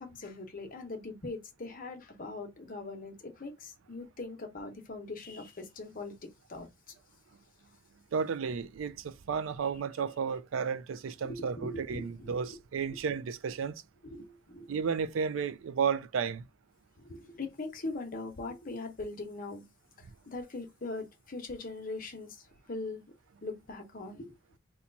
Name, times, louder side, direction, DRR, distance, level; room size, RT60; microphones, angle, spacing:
voice 1, 0.0-6.7 11.2-12.4 14.0-14.7 17.0-19.6 20.0-23.0 23.4-24.3, left 2 dB, 45° left, 0.8 m, -41 dB
voice 2, 8.1-13.8 14.7-16.5, right 6 dB, 85° right, 0.4 m, -33 dB
2.9 x 2.3 x 3.8 m
head